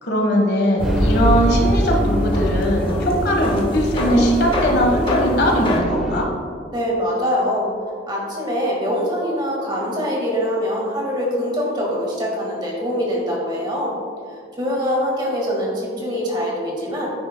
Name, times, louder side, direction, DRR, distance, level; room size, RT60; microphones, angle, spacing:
voice 1, 0.0-6.3, equal, 70° left, 0 dB, 1.5 m, -20 dB
sound 1, 0.8-5.8, equal, 30° left, 0.9 m, -26 dB
sound 2, 0.8-6.3, equal, ahead, 0.8 m, -23 dB
voice 2, 6.7-7.7 8.1-13.9 14.5-17.1, equal, 25° right, -3 dB, 1.8 m, -23 dB
9.8 x 8.9 x 2.3 m, 2.2 s
head